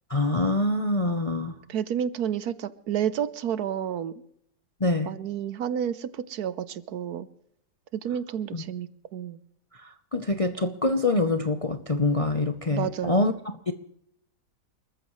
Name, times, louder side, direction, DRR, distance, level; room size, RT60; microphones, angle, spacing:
voice 1, 0.1-1.5 4.8-5.1 8.5-8.6 9.8-13.3 13.7-13.8, left 2 dB, 35° left, 0.6 m, -25 dB
voice 2, 1.7-4.1 5.0-7.3 7.9-9.4 12.7-13.3, right 9 dB, 70° right, 1.3 m, -30 dB
29.0 x 14.0 x 3.2 m
omnidirectional pair, 1.8 m